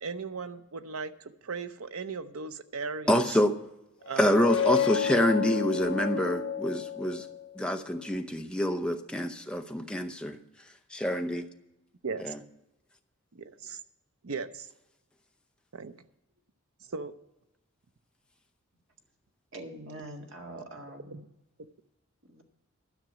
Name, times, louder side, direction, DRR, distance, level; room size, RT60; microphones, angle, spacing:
voice 1, 0.0-3.4 4.1-4.4 12.0-12.3 13.3-13.8 14.2-14.7 15.7-15.9 16.8-17.1 21.1-21.2, right 4 dB, 85° right, 11 dB, 0.7 m, -37 dB
voice 2, 3.1-3.5 4.2-7.3 7.6-10.4 10.9-11.5 12.2-12.4, equal, 5° left, 5 dB, 0.7 m, -27 dB
sound 1, 4.1-7.6, left 8 dB, 70° left, 1.2 m, -30 dB
voice 3, 19.5-21.3 22.3-22.4, right 1 dB, 60° right, 2 dB, 1.8 m, -43 dB
12.5 x 6.0 x 8.6 m, 0.91 s
head